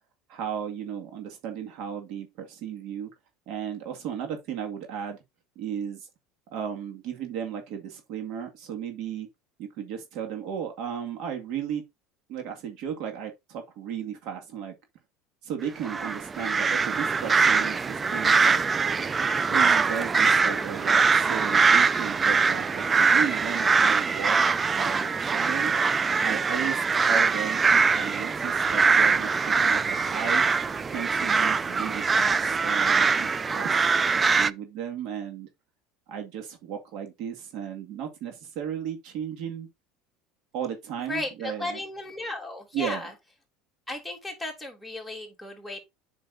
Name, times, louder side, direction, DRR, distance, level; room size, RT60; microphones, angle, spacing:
voice 1, 0.3-3.1 3.5-5.2 5.6-6.1 6.5-9.3 9.6-11.8 12.3-14.8 15.4-18.6 19.4-25.7 26.2-30.4 30.9-35.5 36.1-39.7 40.5-41.8 42.7-43.1, right 8 dB, 60° right, 2.0 m, -35 dB
sound 1, 15.8-34.5, right 5 dB, 20° right, 0.4 m, -23 dB
voice 2, 41.1-43.1 43.9-45.8, left 2 dB, ahead, 3.2 m, -35 dB
8.2 x 6.1 x 2.6 m
supercardioid pair, 115°, 0 cm